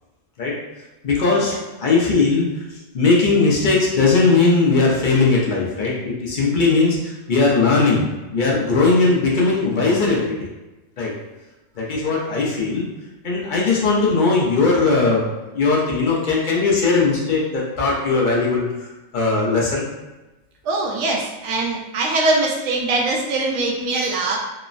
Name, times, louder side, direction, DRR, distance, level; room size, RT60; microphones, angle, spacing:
voice 1, 1.0-2.5 2.9-10.5 11.0-11.1 11.8-12.8 13.2-15.2 15.5-18.9 19.1-19.8, left 3 dB, 55° left, -3 dB, 0.6 m, -19 dB
voice 2, 20.6-24.4, right 2 dB, 80° right, -1 dB, 0.9 m, -22 dB
3.0 x 2.0 x 2.4 m, 1.1 s
omnidirectional pair, 1.3 m